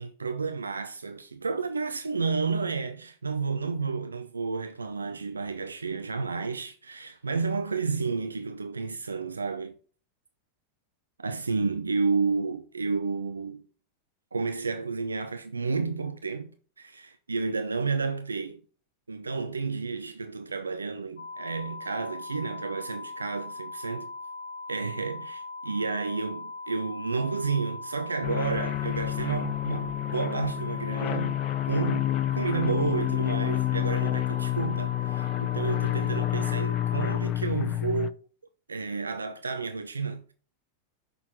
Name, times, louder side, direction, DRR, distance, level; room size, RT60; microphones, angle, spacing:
voice 1, 0.0-9.7 11.2-13.6 14.3-16.5 16.8-18.6 19.1-24.1 24.7-31.3 31.7-38.1 38.7-40.3, right 4 dB, 75° right, 0.5 m, -31 dB
sound 1, 21.2-37.2, left 3 dB, 75° left, 0.8 m, -40 dB
sound 2, 28.2-38.1, left 15 dB, 35° left, 0.4 m, -29 dB
6.2 x 4.0 x 5.9 m
figure-of-eight pair, 90°, 0 cm